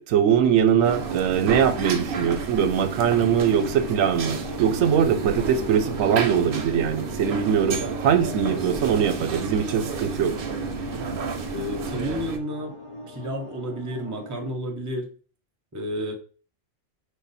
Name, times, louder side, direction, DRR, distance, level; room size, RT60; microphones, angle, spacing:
voice 1, 0.0-10.3, right 8 dB, 90° right, 1.0 m, -22 dB
sound 1, 0.8-12.4, right 4 dB, 55° right, 0.7 m, -31 dB
sound 2, 3.3-14.5, left 1 dB, 35° left, 0.5 m, -40 dB
voice 2, 11.5-12.8 13.1-15.1 15.7-16.1, equal, 20° right, 0.6 m, -31 dB
5.2 x 2.2 x 4.0 m
omnidirectional pair, 1.4 m